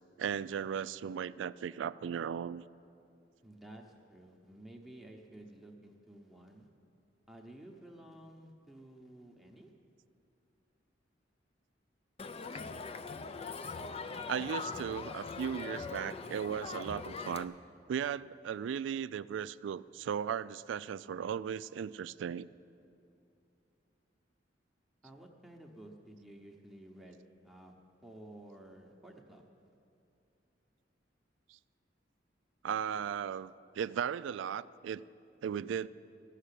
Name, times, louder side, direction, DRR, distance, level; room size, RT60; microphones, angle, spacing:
voice 1, 0.2-2.6 14.3-17.5 17.9-22.5 32.6-35.0 35.4-35.9, right 8 dB, 85° right, 18 dB, 0.3 m, -36 dB
voice 2, 3.4-6.7 7.3-9.7 25.0-27.7 28.0-29.4, right 1 dB, ahead, 0 dB, 0.9 m, -53 dB
Crowd, 12.2-17.4, left 4 dB, 30° left, 0.4 m, -41 dB
14.0 x 6.6 x 9.9 m, 2.6 s
head